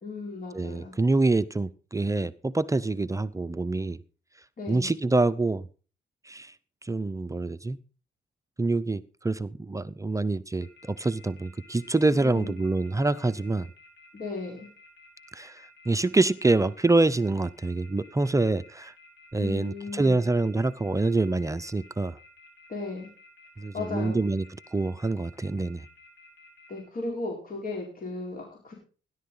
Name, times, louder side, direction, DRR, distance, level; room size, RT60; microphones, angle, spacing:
voice 1, 0.0-1.0 4.6-4.9 12.1-12.6 14.1-14.7 19.4-20.2 22.7-23.1 23.7-24.2 26.7-28.7, left 3 dB, 45° left, 4.5 m, -36 dB
voice 2, 0.5-4.0 4.7-5.6 6.3-6.5 6.8-7.8 8.6-13.7 15.3-18.9 19.3-22.2 23.6-24.4 24.7-25.9, right 2 dB, 15° right, 0.7 m, -26 dB
sound 1, 10.6-26.8, left 3 dB, 60° left, 6.1 m, -54 dB
16.5 x 11.5 x 3.9 m
cardioid pair, 90°, 20 cm